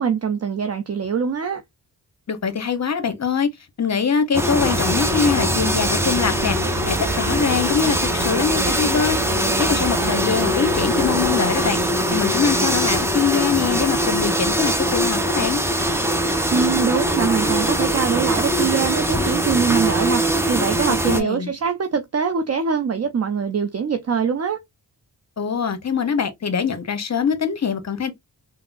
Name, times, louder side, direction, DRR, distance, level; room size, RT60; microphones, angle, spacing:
voice 1, 0.0-1.6 16.5-24.6, right 6 dB, 40° right, 0.5 m, -23 dB
voice 2, 2.3-3.5 3.8-6.6 6.9-9.2 9.6-11.8 12.1-15.6 20.9-21.5 25.4-28.1, left 6 dB, 40° left, 0.8 m, -23 dB
sound 1, 4.3-21.2, equal, 5° right, 0.7 m, -22 dB
sound 2, 4.6-11.4, right 5 dB, 90° right, 0.6 m, -31 dB
3.4 x 2.0 x 2.4 m
cardioid pair, 50°, 42 cm